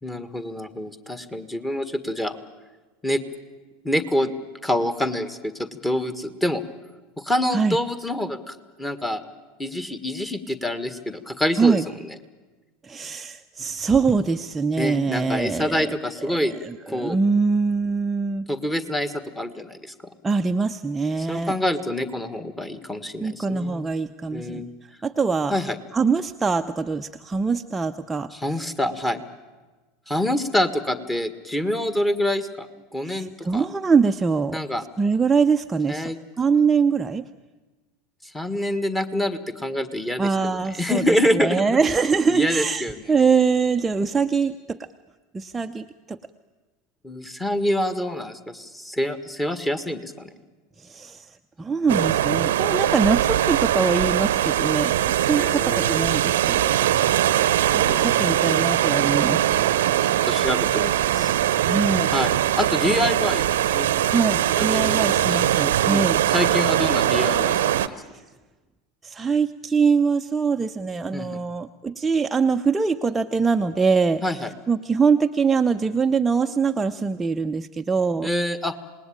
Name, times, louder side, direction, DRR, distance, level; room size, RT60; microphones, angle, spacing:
voice 1, 0.0-2.4 3.0-3.2 3.8-4.3 4.6-6.6 7.2-9.2 9.6-11.9 14.8-16.5 16.9-17.2 18.5-19.9 21.2-23.9 24.3-24.7 25.5-25.8 28.3-29.2 30.1-33.6 34.5-34.8 35.9-36.2 38.3-41.8 42.3-43.0 47.0-50.3 55.4-56.1 57.9-58.1 60.2-61.3 62.1-63.5 63.7-63.9 64.6-65.0 65.3-66.0 66.3-68.0 71.1-71.4 74.2-74.5 78.2-78.7, left 1 dB, 10° left, 12 dB, 1.8 m, -26 dB
voice 2, 12.8-16.0 16.3-18.5 20.2-21.5 23.2-24.6 25.0-25.6 25.9-28.3 28.6-28.7 33.1-34.6 35.0-36.1 36.4-37.3 40.2-41.0 41.3-44.9 45.3-46.2 50.8-56.7 57.7-59.5 61.6-62.1 64.1-66.2 69.0-74.2 74.7-78.3, right 5 dB, 15° right, 6 dB, 0.7 m, -23 dB
sound 1, 51.9-67.9, right 12 dB, 65° right, 0.8 m, -21 dB
27.0 x 19.5 x 8.8 m, 1.2 s
figure-of-eight pair, 80°, 0 cm